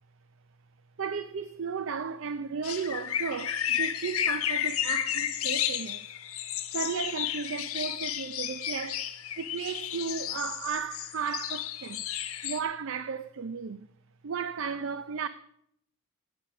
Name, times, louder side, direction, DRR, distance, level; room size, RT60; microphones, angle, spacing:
voice 1, 1.0-6.1 6.7-9.0 9.4-12.0 12.4-13.9 14.2-15.3, right 6 dB, 60° right, 0.5 m, -34 dB
sound 1, 2.6-12.6, left 10 dB, 80° left, 1.1 m, -32 dB
16.0 x 8.2 x 5.9 m
head